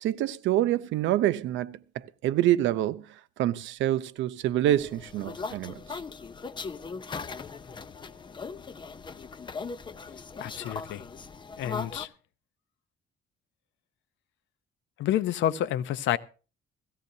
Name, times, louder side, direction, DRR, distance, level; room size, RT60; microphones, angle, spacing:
voice 1, 0.0-6.0, right 13 dB, 90° right, 0.7 m, -27 dB
sound 1, 4.7-12.1, left 4 dB, 25° left, 0.7 m, -39 dB
voice 2, 10.4-11.0 11.6-12.1 15.0-16.2, left 11 dB, 80° left, 0.7 m, -28 dB
17.5 x 15.0 x 2.7 m
cardioid pair, 135°, 19 cm